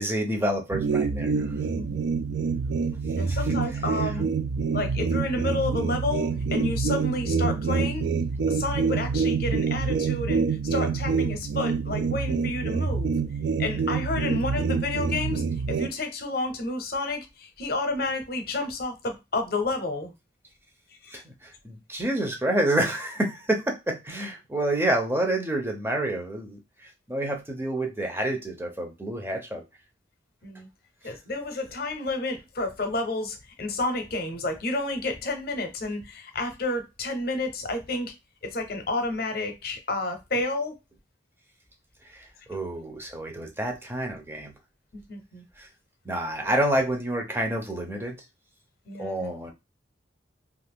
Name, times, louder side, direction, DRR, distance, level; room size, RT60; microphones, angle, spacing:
voice 1, 0.0-1.5 3.3-3.6 21.1-26.6 27.1-29.6 42.1-44.5 45.6-45.7 46.1-48.2 49.0-49.5, right 1 dB, 15° right, 0.6 m, -28 dB
sound 1, 0.7-15.9, right 5 dB, 65° right, 0.4 m, -26 dB
voice 2, 1.7-2.0 3.2-4.3 4.7-8.1 8.5-13.1 13.6-15.4 15.7-20.1 30.4-30.7 31.0-38.1 38.4-40.7 45.1-45.4 48.9-49.3, left 2 dB, 55° left, 0.7 m, -30 dB
2.5 x 2.4 x 3.4 m
head